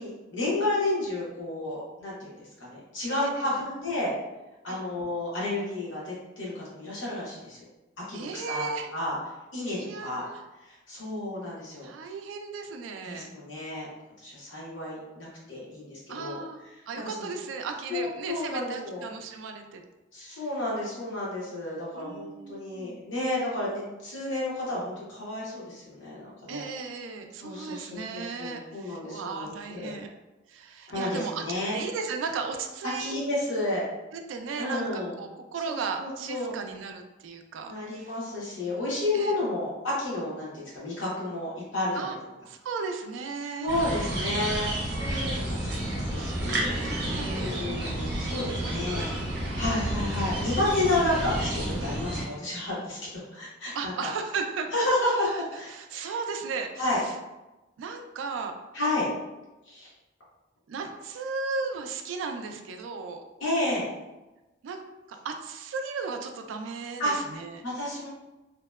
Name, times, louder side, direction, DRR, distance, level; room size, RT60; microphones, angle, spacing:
voice 1, 0.0-4.1 4.6-7.6 8.1-8.7 8.9-9.2 9.5-10.2 10.6-11.9 13.1-13.9 14.2-16.4 17.0-17.3 17.9-19.0 20.1-26.7 27.4-29.9 30.9-31.8 33.0-33.8 34.6-35.1 35.7-36.5 37.7-42.2 43.6-46.8 47.1-49.1 49.6-53.9 54.7-56.1 56.8-57.0 58.7-59.1 59.7-59.9 63.4-63.9 67.0-67.2 67.6-68.1, left 1 dB, 80° left, -6 dB, 0.9 m, -31 dB
voice 2, 3.1-3.6 4.7-4.8 8.1-8.9 9.7-10.4 11.8-13.3 16.1-19.8 20.2-20.4 21.9-23.1 26.5-30.1 30.5-31.4 31.7-33.1 34.1-38.1 39.1-39.4 41.9-42.2 42.5-43.7 46.8-47.6 48.4-49.0 53.7-54.7 55.2-55.4 55.7-57.1 57.8-58.6 60.7-63.2 64.6-64.8 65.1-67.6, right 4 dB, 80° right, 5 dB, 0.3 m, -36 dB
sound 1, 43.7-52.2, right 1 dB, 60° right, 0.7 m, -30 dB
2.8 x 2.1 x 2.2 m, 1.1 s
head